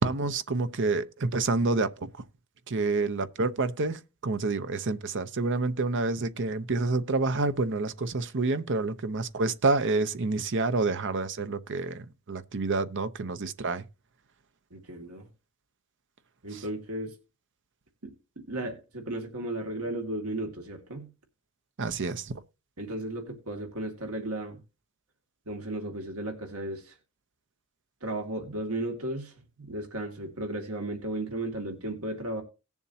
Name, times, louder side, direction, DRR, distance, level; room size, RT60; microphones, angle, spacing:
voice 1, 0.0-2.1 2.7-13.9 16.5-16.6 21.8-22.3, right 3 dB, 55° right, 0.8 m, -28 dB
voice 2, 14.7-15.3 16.4-17.2 18.0-21.1 22.8-24.6 25.5-26.9 28.0-32.4, right 1 dB, 75° right, 2.3 m, -35 dB
18.5 x 7.2 x 2.8 m
head